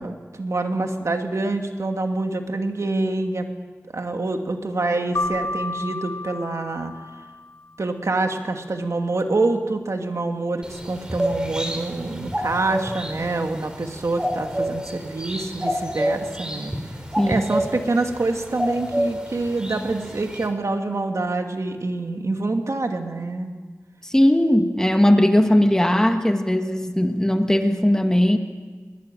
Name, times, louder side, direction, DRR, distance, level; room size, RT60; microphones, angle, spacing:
voice 1, 0.0-3.5 3.9-6.9 7.8-16.7 17.2-23.5, right 2 dB, 65° right, 4 dB, 2.4 m, -26 dB
Keyboard (musical), 5.1-7.7, left 2 dB, 85° left, 2.7 m, -31 dB
sound 1, 10.6-20.5, equal, 15° right, 4.1 m, -29 dB
voice 2, 17.2-17.5 24.0-28.4, left 1 dB, 10° left, 5 dB, 1.9 m, -18 dB
22.5 x 21.0 x 9.2 m, 1.4 s
wide cardioid pair, 80°, 5 cm